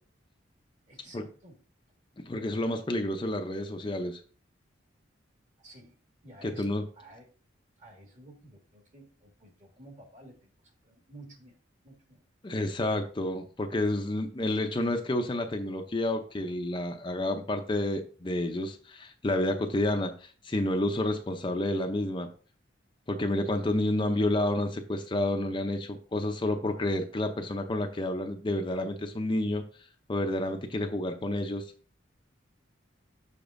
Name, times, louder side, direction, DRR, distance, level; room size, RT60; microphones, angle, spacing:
voice 1, 0.8-1.6 5.6-6.0 6.2-7.3 7.8-11.6 11.8-12.2, right 1 dB, 40° right, 1 dB, 1.9 m, -52 dB
voice 2, 2.2-4.2 6.4-6.8 12.4-22.3 23.1-29.6 30.1-31.7, left 1 dB, 25° left, 5 dB, 0.5 m, -30 dB
7.0 x 6.9 x 2.6 m, 0.40 s
head